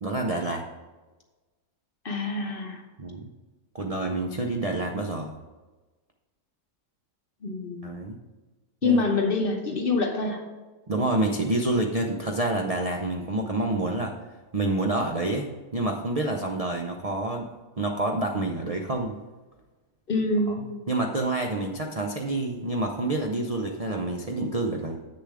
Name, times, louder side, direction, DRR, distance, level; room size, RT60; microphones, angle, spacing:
voice 1, 0.0-0.7 3.0-3.3 3.7-5.3 7.8-8.2 8.8-9.0 10.9-14.1 14.5-17.5 17.8-19.2 20.9-25.0, right 2 dB, 45° right, 2 dB, 0.4 m, -28 dB
voice 2, 2.0-2.8 7.4-8.0 8.8-10.4 20.1-20.9, left 3 dB, 40° left, 3 dB, 1.0 m, -26 dB
8.0 x 6.8 x 4.9 m, 1.2 s
omnidirectional pair, 1.6 m